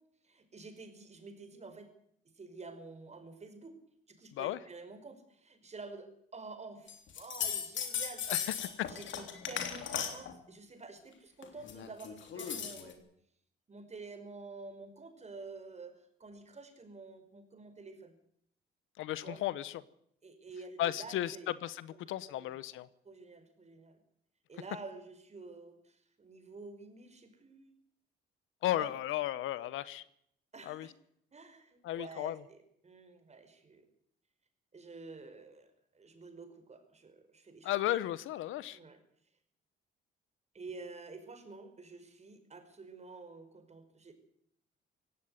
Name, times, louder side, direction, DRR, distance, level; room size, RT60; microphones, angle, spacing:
voice 1, 0.2-1.9 2.3-3.7 4.1-8.4 8.9-13.0 13.7-18.1 19.2-19.4 20.2-21.5 21.9-22.0 22.3-22.6 23.0-24.0 24.5-27.7 28.7-28.9 30.5-30.9 31.3-32.6 32.8-33.9 34.7-35.7 35.9-37.8 38.7-39.0 40.5-44.1, right 3 dB, 35° right, 7 dB, 5.1 m, -49 dB
sound 1, 6.9-10.3 11.4-12.9, left 8 dB, 70° left, 3.5 m, -37 dB
voice 2, 8.3-8.9 19.0-19.8 20.8-22.9 28.6-30.0 30.7-30.9 31.8-32.3 37.6-38.8, left 13 dB, 85° left, 17 dB, 1.0 m, -35 dB
17.0 x 16.5 x 9.7 m, 0.70 s
cardioid pair, 90°, 20 cm